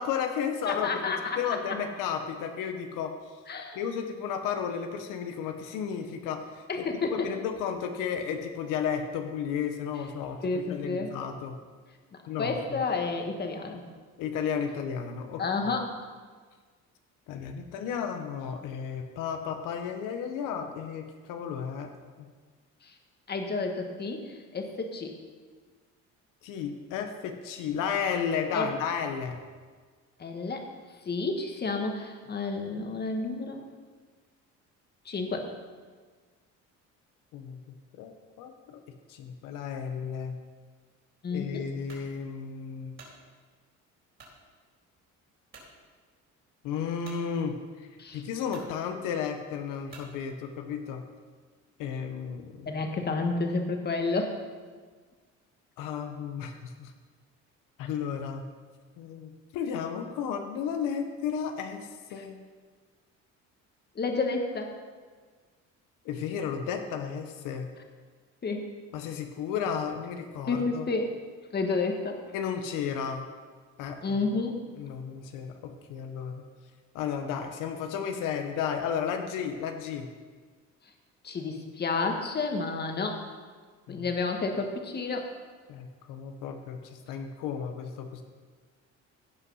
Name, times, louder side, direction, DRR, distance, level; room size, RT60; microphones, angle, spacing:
voice 1, 0.0-3.1 3.7-11.6 12.3-12.8 14.2-15.7 17.3-21.9 22.2-22.3 26.4-29.4 37.3-37.6 38.0-38.8 39.1-40.4 41.3-43.0 46.6-47.9 48.1-51.0 51.8-52.8 55.8-56.9 57.8-58.4 59.0-62.4 66.0-67.7 68.9-70.9 72.3-73.3 73.8-74.2 74.8-76.4 76.9-80.1 83.9-84.1 85.7-88.2, left 7 dB, 85° left, 6 dB, 1.0 m, -33 dB
voice 2, 0.6-1.6 3.5-3.8 6.7-7.3 10.4-11.1 12.4-13.8 15.4-15.9 22.8-22.9 23.3-25.2 28.5-28.7 30.2-30.7 31.0-33.6 35.0-35.5 41.2-41.7 48.0-48.2 52.7-54.4 62.2-62.3 63.9-64.7 68.4-68.7 70.5-71.1 71.5-72.2 74.0-74.7 81.2-83.2 83.9-85.3, left 3 dB, 30° left, 4 dB, 1.6 m, -30 dB
sound 1, 41.9-42.1 42.7-43.2 44.2-44.4 44.9-45.0 45.5-45.7 47.0-47.2 48.0-48.1 48.5-48.7 49.9-50.1, right 3 dB, 40° right, 4.0 m, -49 dB
16.0 x 5.6 x 5.6 m, 1.5 s
cardioid pair, 115°, 31 cm